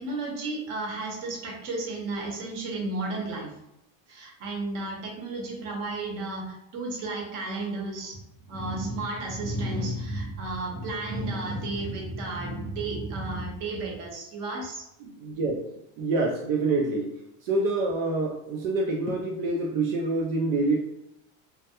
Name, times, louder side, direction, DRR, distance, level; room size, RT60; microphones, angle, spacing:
voice 1, 0.0-3.6 4.1-8.2 8.5-14.8, right 2 dB, 50° right, 0 dB, 0.8 m, -32 dB
voice 2, 15.0-15.7 16.0-20.8, right 2 dB, 75° right, 0 dB, 0.5 m, -27 dB
2.3 x 2.1 x 2.8 m, 0.82 s
supercardioid pair, 125°, 41 cm